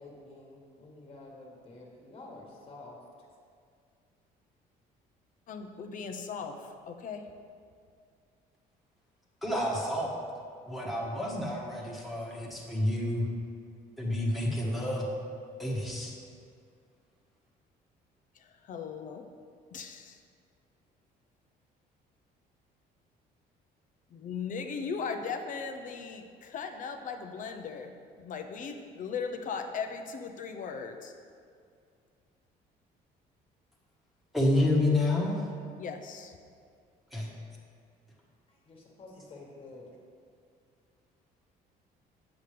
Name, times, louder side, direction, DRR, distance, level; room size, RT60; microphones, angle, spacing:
voice 1, 0.0-3.0 38.5-39.9, left 2 dB, 35° left, -1 dB, 1.6 m, -49 dB
voice 2, 5.5-7.2 18.4-19.2 19.7-20.2 24.1-27.9 28.2-31.1 35.8-36.3, left 5 dB, 50° left, 6 dB, 0.6 m, -38 dB
voice 3, 9.4-10.1 10.7-13.3 14.0-15.1 15.6-16.1 34.3-35.4 37.1-37.3, left 1 dB, ahead, -4 dB, 1.3 m, -29 dB
7.6 x 7.1 x 3.3 m, 2.2 s
cardioid pair, 110°, 17 cm